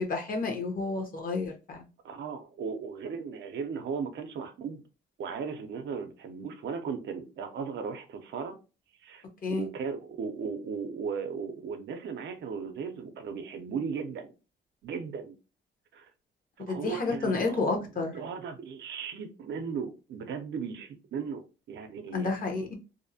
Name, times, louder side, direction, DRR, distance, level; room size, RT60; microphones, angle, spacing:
voice 1, 0.0-1.9 9.4-9.7 16.7-18.1 22.1-22.8, left 3 dB, 45° left, 0.8 m, -30 dB
voice 2, 2.0-4.8 5.2-8.6 9.0-9.2 9.6-14.3 14.8-15.4 15.9-16.1 16.6-22.3, right 6 dB, 65° right, 0.5 m, -37 dB
2.6 x 2.0 x 2.7 m
cardioid pair, 90°, 20 cm